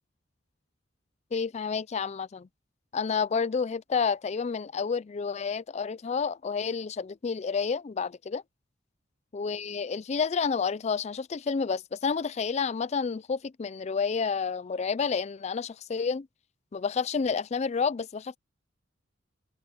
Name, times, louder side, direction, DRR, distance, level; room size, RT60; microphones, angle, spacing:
voice 1, 1.3-2.5 2.9-8.4 9.3-16.3 16.7-18.4, left 5 dB, 35° left, 0.4 m, -30 dB
open air
head